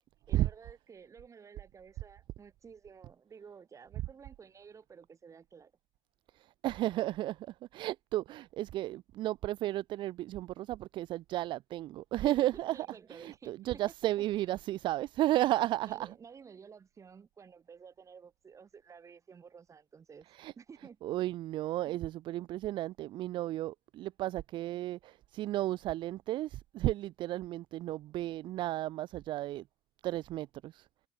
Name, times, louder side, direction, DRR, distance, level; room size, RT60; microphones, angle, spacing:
voice 1, 0.3-5.7 12.2-13.8 15.8-20.3 20.6-21.0, right 6 dB, 35° right, 7.0 m, -53 dB
voice 2, 6.6-7.5 7.7-16.1 20.3-20.5 21.0-29.6 30.0-30.8, right 15 dB, 65° right, 0.5 m, -33 dB
cardioid pair, 95°, 9 cm